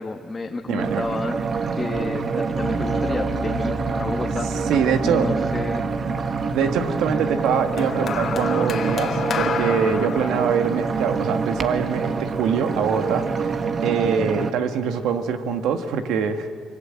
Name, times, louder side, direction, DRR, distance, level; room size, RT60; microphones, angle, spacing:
voice 1, 0.0-1.5 1.7-4.7 5.0-5.9, left 3 dB, 25° left, 2 dB, 1.4 m, -31 dB
voice 2, 0.7-1.0 4.7-5.3 6.5-13.5 13.8-16.5, right 6 dB, 90° right, 7 dB, 1.7 m, -24 dB
sound 1, 0.8-14.5, right 5 dB, 50° right, 1.4 m, -26 dB
sound 2, 2.5-9.3, left 3 dB, 40° left, 1.4 m, -38 dB
sound 3, 7.8-12.2 13.1-13.4, left 7 dB, 60° left, 2.0 m, -30 dB
24.5 x 24.0 x 8.9 m, 2.4 s
cardioid pair, 90°, 0 cm